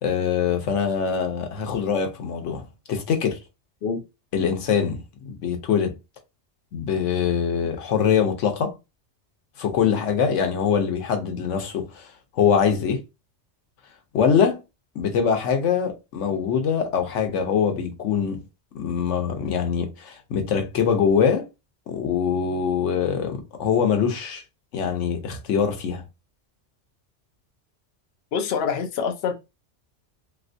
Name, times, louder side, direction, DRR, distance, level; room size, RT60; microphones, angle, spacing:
voice 1, 0.0-3.4 4.3-5.0 5.2-5.9 6.7-8.7 9.6-12.1 12.4-13.0 14.1-14.6 15.0-18.4 18.7-21.5 21.9-24.4 24.7-26.0, left 7 dB, 90° left, 1.1 m, -23 dB
voice 2, 28.3-29.3, left 6 dB, 60° left, 0.8 m, -25 dB
3.3 x 2.9 x 2.6 m
omnidirectional pair, 1.2 m